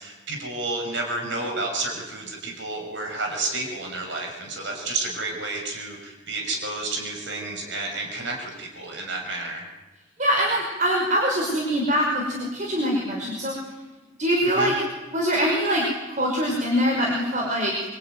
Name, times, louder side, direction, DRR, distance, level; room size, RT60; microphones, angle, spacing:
voice 1, 0.0-9.7 14.4-14.7, right 2 dB, 65° right, 2 dB, 6.2 m, -31 dB
voice 2, 10.2-13.6 14.2-14.8 15.1-15.9 16.2-17.8, equal, 40° right, -1 dB, 5.4 m, -23 dB
25.5 x 25.0 x 9.5 m, 1.1 s
head